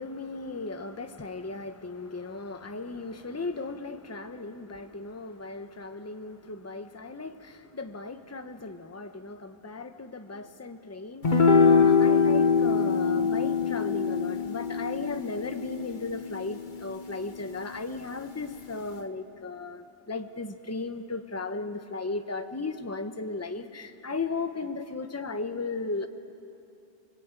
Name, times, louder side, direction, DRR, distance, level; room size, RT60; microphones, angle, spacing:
voice 1, 0.0-26.1, left 3 dB, 15° left, 8 dB, 0.9 m, -36 dB
sound 1, 11.2-17.8, left 5 dB, 45° left, 1.2 m, -24 dB
28.5 x 21.0 x 9.1 m, 2.7 s
omnidirectional pair, 1.2 m